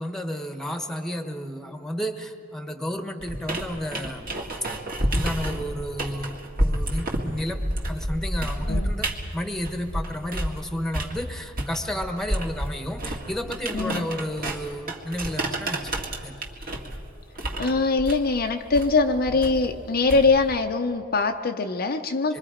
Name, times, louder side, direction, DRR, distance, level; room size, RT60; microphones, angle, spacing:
voice 1, 0.0-4.3 5.0-7.6 7.8-16.5 22.3-22.4, equal, ahead, 6 dB, 1.2 m, -32 dB
sound 1, 3.2-10.6 10.9-20.5, right 1 dB, 45° right, 2.0 m, -30 dB
voice 2, 13.7-14.1 17.6-22.4, left 3 dB, 50° left, 5 dB, 0.7 m, -23 dB
26.5 x 23.0 x 5.0 m, 2.7 s
head